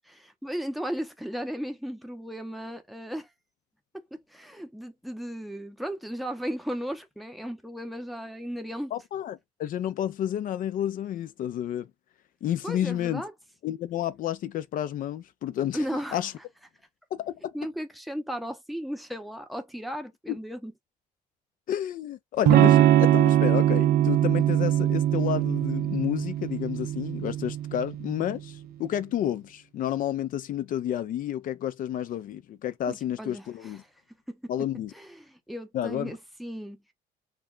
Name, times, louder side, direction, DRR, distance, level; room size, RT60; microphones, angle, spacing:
voice 1, 0.1-3.3 3.9-8.9 12.6-13.3 15.7-16.2 17.5-20.7 32.9-33.7 34.3-34.5 34.9-36.8, equal, ahead, 0.6 m, -35 dB
voice 2, 8.9-11.9 12.4-13.2 13.6-15.8 16.1-16.3 17.1-17.5 20.3-20.4 21.7-33.8 34.5-34.9 35.7-36.2, left 11 dB, 55° left, 0.4 m, -30 dB
Electric guitar / Strum, 22.4-28.2, right 12 dB, 65° right, 0.4 m, -22 dB
2.2 x 2.2 x 3.6 m
cardioid pair, 110°, 17 cm